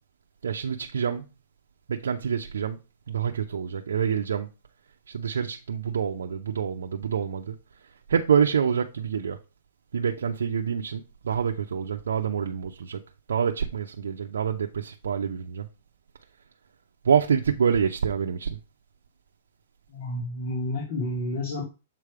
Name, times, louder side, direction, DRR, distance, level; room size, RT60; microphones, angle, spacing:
voice 1, 0.4-1.2 1.9-2.8 3.1-4.5 5.1-7.6 8.1-9.4 9.9-13.0 13.3-15.7 17.0-18.6, right 7 dB, 90° right, 0.6 m, -26 dB
voice 2, 19.9-21.6, left 1 dB, 55° left, 2.4 m, -30 dB
7.5 x 3.3 x 4.9 m
hypercardioid pair, 140°, 0 cm